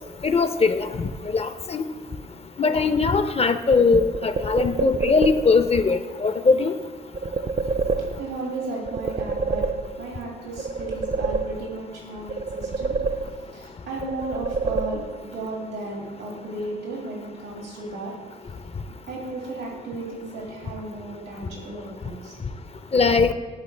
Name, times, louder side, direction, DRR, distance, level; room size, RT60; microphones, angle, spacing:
voice 1, 0.2-0.9 1.3-1.8 2.6-6.7 22.9-23.3, left 4 dB, 30° left, 10 dB, 0.5 m, -20 dB
sound 1, 3.7-5.7 7.1-8.5 8.9-10.2 10.6-11.9 12.3-13.7 14.0-15.4, right 4 dB, 35° right, 0.4 m, -28 dB
voice 2, 8.2-9.6 10.0-12.9 13.5-15.0 15.3-18.1 19.1-22.4, right 2 dB, 90° right, -2 dB, 2.1 m, -34 dB
10.5 x 3.8 x 3.3 m, 1.4 s
supercardioid pair, 55°, 20 cm